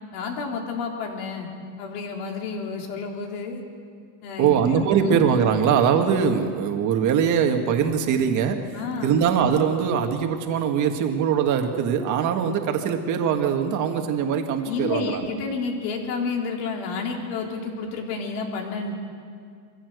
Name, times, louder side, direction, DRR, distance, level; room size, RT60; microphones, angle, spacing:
voice 1, 0.1-1.5 1.8-3.6 4.2-5.2 8.7-9.2 14.6-18.9, left 4 dB, 80° left, 1 dB, 3.9 m, -30 dB
voice 2, 4.4-8.7 9.0-15.3, right 7 dB, 40° right, 5 dB, 1.9 m, -22 dB
24.0 x 16.0 x 8.0 m, 2.1 s
cardioid pair, 160°, 46 cm